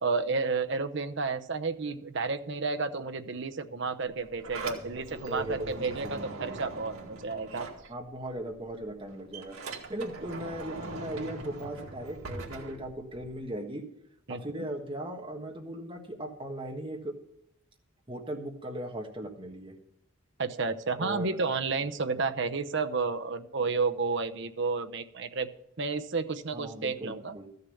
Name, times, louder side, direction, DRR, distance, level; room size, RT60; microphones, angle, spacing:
voice 1, 0.0-7.7 14.3-14.6 20.4-25.5 25.8-27.4, right 4 dB, 55° right, 8 dB, 0.8 m, -31 dB
Sliding door, 4.1-8.4 8.7-13.4, right 3 dB, 80° right, 2.1 m, -42 dB
voice 2, 5.0-6.5 7.9-9.6 9.9-13.8 14.3-17.1 18.1-19.7 21.0-21.4 26.5-27.5, right 1 dB, 25° right, 2 dB, 1.5 m, -38 dB
14.5 x 6.7 x 7.0 m, 0.75 s
head